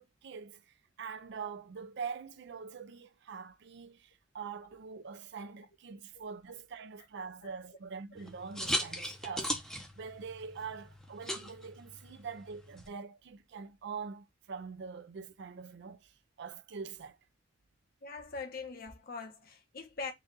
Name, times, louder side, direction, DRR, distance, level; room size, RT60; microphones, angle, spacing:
voice 1, 0.0-17.2, right 5 dB, 60° right, 0.5 m, -44 dB
sound 1, 8.2-12.9, equal, 5° left, 0.7 m, -39 dB
voice 2, 18.0-20.1, left 4 dB, 50° left, 1.0 m, -42 dB
4.0 x 2.4 x 3.9 m
head